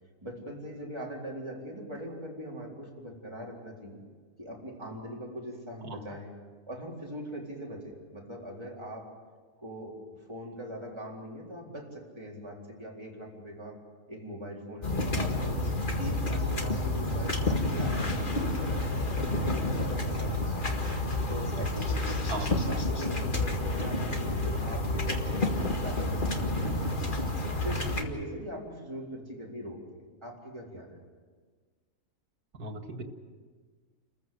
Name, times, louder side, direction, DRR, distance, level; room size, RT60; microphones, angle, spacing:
voice 1, 0.2-4.0 4.4-6.3 6.7-9.1 9.6-10.0 10.3-13.8 14.1-15.6 16.0-20.6 21.3-22.3 22.6-26.9 27.5-29.8 30.2-31.0, equal, 15° right, -3 dB, 4.2 m, -41 dB
sound 1, 14.8-28.0, left 2 dB, 35° left, 2.0 m, -29 dB
voice 2, 32.5-33.0, right 2 dB, 80° right, 5 dB, 2.3 m, -37 dB
29.0 x 15.0 x 7.8 m, 1.5 s
omnidirectional pair, 1.6 m